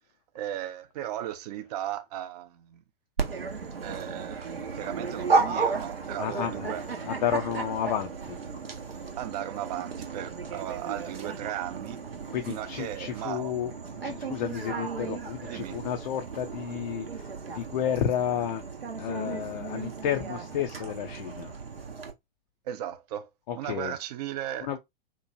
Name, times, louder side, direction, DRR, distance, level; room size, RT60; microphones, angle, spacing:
voice 1, 0.3-2.8 3.8-6.9 9.2-12.0 12.5-13.5 15.5-15.8 22.6-24.8, right 12 dB, 45° right, 0.5 m, -36 dB
Dog, 3.2-22.1, right 4 dB, 85° right, 0.6 m, -34 dB
voice 2, 6.2-6.7 7.1-8.4 12.3-13.7 14.0-18.6 19.0-21.6 23.5-23.9 24.6-24.8, left 9 dB, 50° left, 0.4 m, -31 dB
2.9 x 2.1 x 2.5 m
figure-of-eight pair, 100°, 29 cm